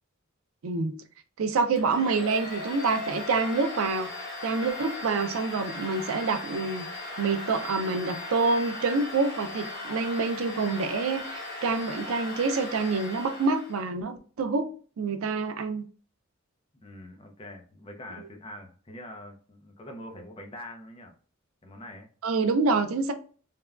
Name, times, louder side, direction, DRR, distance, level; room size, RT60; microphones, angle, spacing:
voice 1, 0.6-0.9 1.4-6.9 7.2-14.7 15.0-15.9 18.2-18.3 22.2-23.1, right 4 dB, 90° right, 0.4 m, -27 dB
Domestic sounds home sounds, 1.8-13.9, left 2 dB, 55° left, 1.0 m, -38 dB
voice 2, 16.8-21.1 21.6-22.1, left 1 dB, 25° left, 0.5 m, -44 dB
3.3 x 2.2 x 2.3 m
head